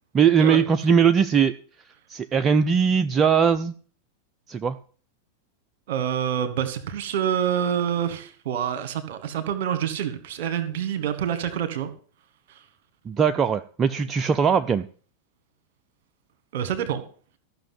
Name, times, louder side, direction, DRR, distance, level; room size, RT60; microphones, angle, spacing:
voice 1, 0.1-1.5 2.1-3.7 4.5-4.8 13.1-14.8, right 7 dB, 25° right, 0.5 m, -20 dB
voice 2, 5.9-11.9 12.5-12.6 16.5-17.0, right 9 dB, 50° right, 1.9 m, -27 dB
14.5 x 6.2 x 7.7 m
figure-of-eight pair, 90°, 0 cm